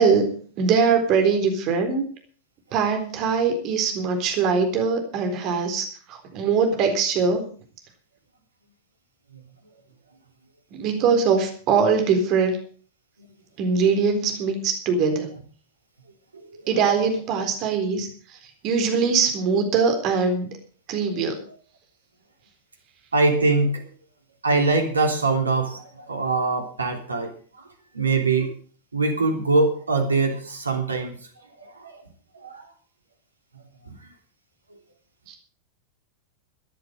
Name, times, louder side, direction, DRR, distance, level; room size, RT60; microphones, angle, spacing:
voice 1, 0.0-2.0 2.7-7.5 10.7-12.6 13.6-15.4 16.7-18.4 18.6-20.5 20.9-21.4 35.3-35.4, right 5 dB, 40° right, 5 dB, 4.0 m, -22 dB
voice 2, 23.1-23.8 24.4-27.3 27.9-28.5 28.9-31.1 31.8-31.9 32.4-32.6, right 3 dB, 75° right, 4 dB, 3.2 m, -22 dB
13.5 x 10.5 x 6.5 m, 0.43 s
figure-of-eight pair, 90°, 0 cm